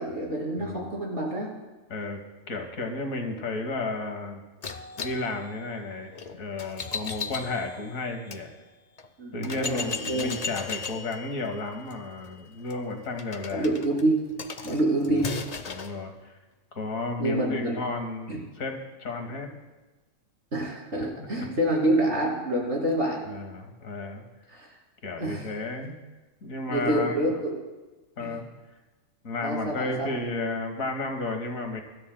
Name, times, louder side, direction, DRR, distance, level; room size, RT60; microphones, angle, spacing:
voice 1, 0.0-1.5 9.2-10.3 13.5-14.2 14.6-15.4 17.2-17.8 18.3-18.4 20.5-23.2 24.5-24.7 25.2-25.5 26.7-27.6 28.2-28.3 29.4-30.1, right 1 dB, 55° right, -2 dB, 3.1 m, -27 dB
voice 2, 1.9-2.2 2.5-4.4 4.7-8.5 9.3-13.7 15.1-15.3 15.7-16.4 16.7-19.5 21.2-21.5 23.3-24.2 25.0-26.0 26.4-27.2 28.2-28.4 29.2-31.8, left 3 dB, 80° left, 4 dB, 1.8 m, -33 dB
sound 1, 4.6-8.4 9.0-9.1 9.4-16.0, left 5 dB, 40° left, 0.6 m, -37 dB
23.5 x 13.0 x 2.2 m, 1.2 s
omnidirectional pair, 1.4 m